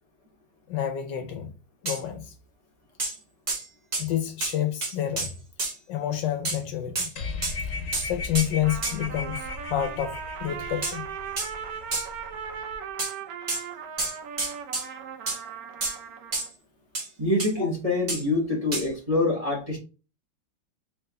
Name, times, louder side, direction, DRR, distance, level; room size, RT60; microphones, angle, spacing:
voice 1, 0.7-1.5 1.8-2.3 4.0-5.4 5.9-7.1 8.0-11.1 17.6-17.7, left 11 dB, 75° left, 1.2 m, -29 dB
sound 1, 1.9-2.0 3.0-3.2 3.5-3.7 3.9-4.1 4.4-4.6 4.8-5.7 6.4-6.6 7.0-7.1 7.4-7.6 7.9-8.1 8.3-8.5 8.8-9.0 10.8-11.0 11.4-11.5 11.9-12.1 13.0-13.1 13.5-13.6 14.0-14.9 15.3-15.4 15.8-16.0 16.3-16.5 16.9-17.1 17.4-17.5 18.1-18.2 18.7-18.9, right 3 dB, 50° right, 0.4 m, -29 dB
sound 2, 7.2-12.8, left 4 dB, 50° left, 1.1 m, -37 dB
Trumpet, 8.6-16.5, right 8 dB, 70° right, 0.9 m, -38 dB
voice 2, 17.2-19.8, left 2 dB, 25° right, 1.0 m, -25 dB
3.5 x 3.4 x 3.4 m
omnidirectional pair, 2.1 m